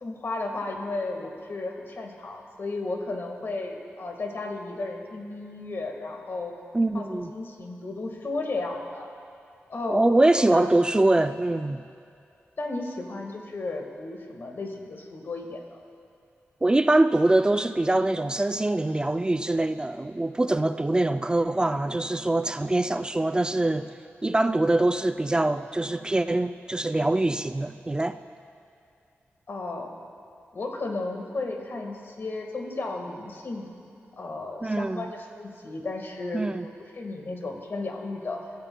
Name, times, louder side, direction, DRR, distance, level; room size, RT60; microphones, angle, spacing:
voice 1, 0.0-6.5 6.9-9.1 9.7-10.6 12.6-15.8 29.5-29.9 30.5-33.7 34.2-38.4, left 2 dB, 55° left, 2 dB, 1.6 m, -34 dB
voice 2, 6.7-7.3 9.9-11.8 16.6-23.9 24.2-28.2 34.6-35.1 36.3-36.7, right 2 dB, 20° right, 10 dB, 0.3 m, -23 dB
24.0 x 13.5 x 2.2 m, 2.5 s
wide cardioid pair, 80°, 5 cm